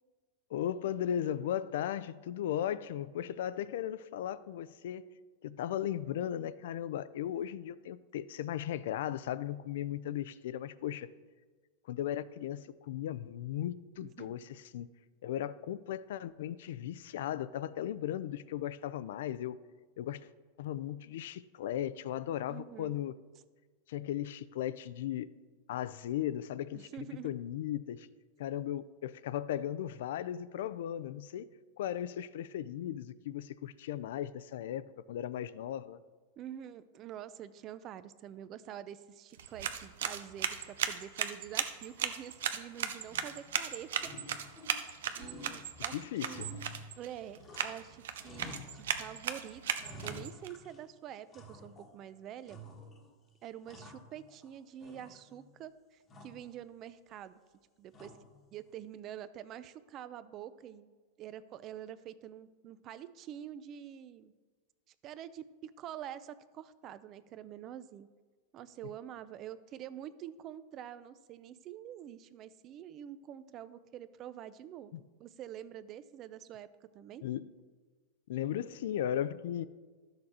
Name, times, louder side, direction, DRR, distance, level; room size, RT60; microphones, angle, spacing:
voice 1, 0.5-5.1 5.4-11.1 11.9-14.4 14.7-14.9 15.2-19.6 20.0-20.3 20.6-23.2 23.9-25.3 25.7-28.1 28.4-31.5 31.8-36.0 45.9-46.5 74.9-75.0 77.2-77.5 78.3-79.6, left 11 dB, 70° left, 17 dB, 0.4 m, -36 dB
voice 2, 14.0-14.3 22.5-22.9 26.7-27.3 36.4-44.1 45.1-46.5 47.0-52.6 53.4-57.4 57.8-58.1 58.5-60.9 61.2-64.3 65.0-68.1 68.5-74.9 75.2-77.2, right 10 dB, 30° right, 15 dB, 0.4 m, -47 dB
sound 1, 39.3-50.5, right 8 dB, 85° right, 0.7 m, -37 dB
sound 2, 43.0-43.6 44.0-44.9 45.2-47.9 48.2-49.2 49.5-50.9 51.3-52.0 52.5-53.1 53.4-54.5 54.8-55.5 56.1-56.5 57.9-58.4, equal, 15° left, 1.2 m, -50 dB
12.5 x 6.7 x 4.2 m, 1.4 s
supercardioid pair, 160°, 0 cm